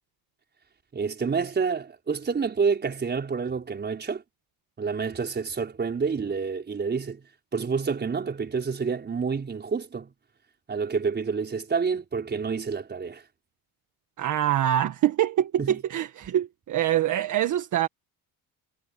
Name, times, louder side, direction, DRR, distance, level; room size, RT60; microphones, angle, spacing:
voice 1, 0.9-4.2 4.8-7.2 7.5-10.1 10.7-13.2 15.6-15.8, right 5 dB, 25° right, 5.3 m, -28 dB
voice 2, 14.2-17.9, right 12 dB, 50° right, 1.6 m, -24 dB
cardioid pair, 135°, 38 cm